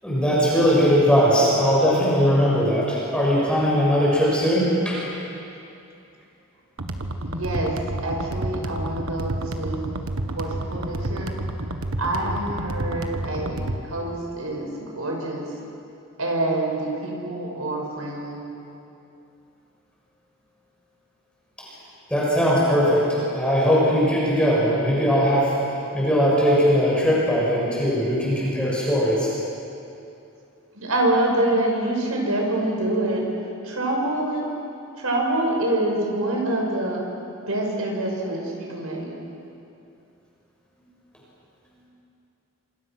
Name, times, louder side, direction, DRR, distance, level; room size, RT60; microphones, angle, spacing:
voice 1, 0.0-5.0 22.1-23.0 23.3-25.5 25.9-29.3, equal, 5° left, -6 dB, 6.7 m, -20 dB
sound 1, 6.8-13.8, right 1 dB, 75° right, 1.5 m, -30 dB
voice 2, 7.2-7.8 8.0-10.0 10.3-11.4 12.0-15.5 16.2-18.5 30.7-33.2 33.6-34.4 35.0-37.0 37.5-39.2, right 1 dB, 90° right, 0 dB, 6.2 m, -26 dB
27.0 x 26.5 x 6.3 m, 2.7 s
head